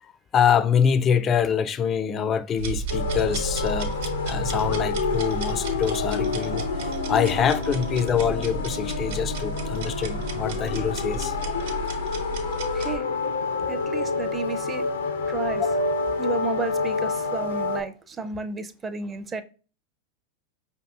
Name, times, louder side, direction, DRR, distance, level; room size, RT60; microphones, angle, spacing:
voice 1, 0.0-3.9 4.3-6.6 7.1-11.4, left 7 dB, 30° left, 0.4 m, -25 dB
sound 1, 2.6-13.0, right 2 dB, 70° right, 0.9 m, -32 dB
sound 2, 2.9-17.8, left 4 dB, 80° left, 0.6 m, -28 dB
voice 2, 12.7-13.1 13.7-14.8 15.3-15.6 16.2-19.4, right 4 dB, 25° right, 0.5 m, -32 dB
5.0 x 2.7 x 2.3 m
hypercardioid pair, 95°, 0 cm